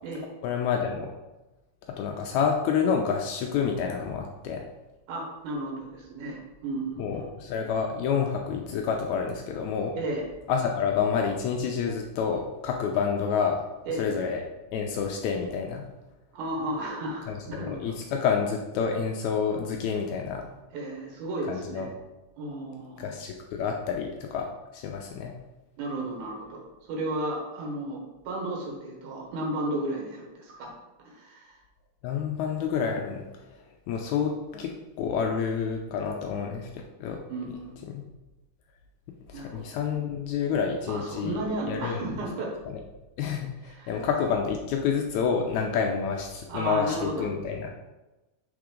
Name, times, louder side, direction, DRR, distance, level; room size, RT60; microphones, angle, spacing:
voice 1, 0.4-1.1 2.0-4.6 7.0-9.9 10.5-13.6 14.0-14.4 14.7-15.9 17.3-20.4 21.5-21.9 23.0-24.5 24.7-25.3 32.0-33.2 33.9-37.2 37.9-38.0 39.3-41.4 41.7-42.1 42.7-42.8 43.2-47.7, left 6 dB, 80° left, 2 dB, 1.9 m, -28 dB
voice 2, 5.1-7.2 10.0-10.2 13.9-14.1 16.3-17.9 20.7-21.9 22.4-23.1 25.8-28.0 28.2-30.7 31.0-31.6 37.3-37.8 39.3-39.6 40.9-42.5 43.7-44.0 46.5-47.3, right 1 dB, 85° right, -1 dB, 2.7 m, -33 dB
6.0 x 3.7 x 5.0 m, 1.1 s
omnidirectional pair, 3.5 m